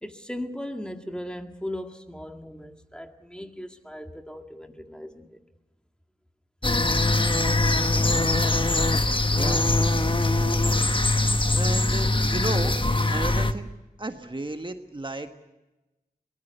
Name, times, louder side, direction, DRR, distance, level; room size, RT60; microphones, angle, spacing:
voice 1, 0.0-5.4, left 1 dB, 5° left, 5 dB, 1.9 m, -37 dB
sound 1, 6.6-13.5, left 2 dB, 30° left, 1.3 m, -22 dB
voice 2, 9.3-9.6 11.5-12.7 13.1-13.7 14.0-15.3, right 2 dB, 30° right, 6 dB, 1.5 m, -33 dB
23.5 x 19.0 x 8.0 m, 1.0 s
wide cardioid pair, 55°, 16 cm